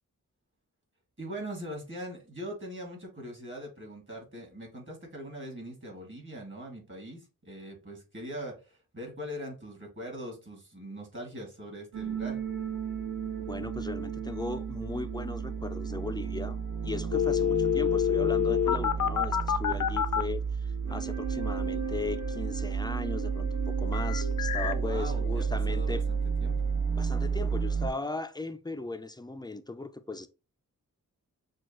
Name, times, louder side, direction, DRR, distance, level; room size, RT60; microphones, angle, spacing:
voice 1, 1.2-12.4 24.6-26.7, equal, 40° right, 2.3 m, -41 dB
sound 1, 11.9-27.9, right 6 dB, 60° right, 1.8 m, -32 dB
voice 2, 13.5-26.0 26.9-30.3, left 3 dB, 15° left, 0.4 m, -37 dB
sound 2, 17.1-20.2 23.9-24.7, left 10 dB, 75° left, 0.5 m, -27 dB
6.3 x 2.3 x 3.0 m
wide cardioid pair, 85°, 32 cm